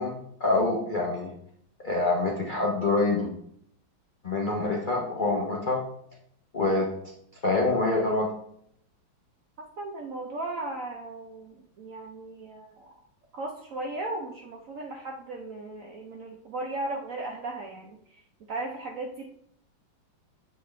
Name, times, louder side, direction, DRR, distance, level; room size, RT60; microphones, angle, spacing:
voice 1, 0.0-1.3 1.8-3.3 4.2-5.8 6.5-6.9 7.4-8.3, left 2 dB, 60° left, -2 dB, 0.5 m, -26 dB
voice 2, 9.8-12.9 13.3-18.2 18.5-19.3, right 2 dB, 65° right, 1 dB, 0.8 m, -36 dB
8.2 x 4.2 x 3.2 m, 0.70 s
omnidirectional pair, 2.1 m